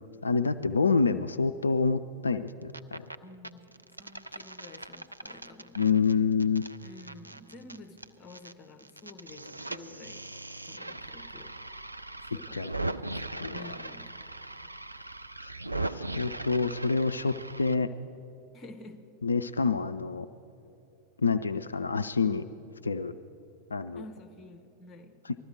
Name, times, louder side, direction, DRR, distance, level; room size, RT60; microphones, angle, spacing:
voice 1, 0.2-3.1 5.8-6.6 12.5-12.7 13.4-13.7 15.4-15.5 15.8-17.9 19.2-20.3 21.2-22.4 22.8-23.2 23.7-24.0 25.2-25.4, left 4 dB, 75° left, 10 dB, 0.3 m, -27 dB
sound 1, 2.5-3.1 3.4-8.5 8.8-17.7, right 2 dB, 85° right, 0.4 m, -39 dB
voice 2, 3.2-3.7 4.0-5.8 6.8-10.2 10.7-11.6 12.2-13.2 13.5-14.1 18.5-19.0 23.9-25.2, left 2 dB, 25° left, 7 dB, 1.1 m, -49 dB
19.5 x 13.5 x 4.7 m, 3.0 s
figure-of-eight pair, 90°, 0 cm